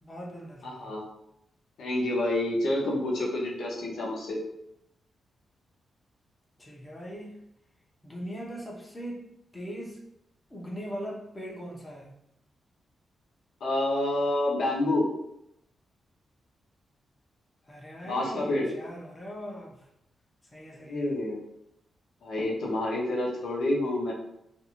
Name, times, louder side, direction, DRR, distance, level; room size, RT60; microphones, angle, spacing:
voice 1, 0.0-0.9 6.6-7.4 8.0-10.0 10.5-12.1 17.7-19.9 20.5-21.1, equal, 15° left, -3 dB, 0.6 m, -40 dB
voice 2, 1.8-4.4 13.6-15.1 18.0-18.7 20.8-21.4 22.2-24.1, left 1 dB, 90° left, -3 dB, 0.7 m, -28 dB
2.6 x 2.3 x 2.8 m, 0.81 s
cardioid pair, 115°, 0 cm